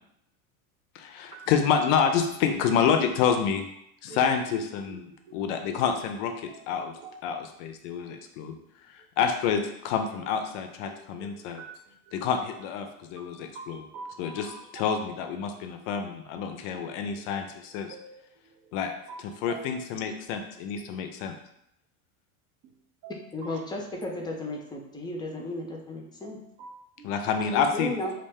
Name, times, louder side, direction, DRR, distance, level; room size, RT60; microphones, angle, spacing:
voice 1, 0.9-3.7 4.0-6.9 7.2-8.6 8.9-11.6 12.1-13.9 14.2-17.9 18.7-18.9 19.2-21.3 27.0-28.0, left 7 dB, 55° left, 5 dB, 0.5 m, -28 dB
voice 2, 10.9-11.3 11.6-11.7 13.2-14.6 15.9-16.1 16.7-16.8 17.9-18.2 19.1-19.2 19.5-19.7 23.0-23.1 23.4-23.5 26.2-27.1, right 4 dB, 40° right, 3 dB, 0.4 m, -45 dB
voice 3, 23.3-26.4 27.4-28.1, left 1 dB, 10° left, 0 dB, 0.5 m, -34 dB
2.4 x 2.1 x 3.4 m, 0.75 s
hypercardioid pair, 85°, 43 cm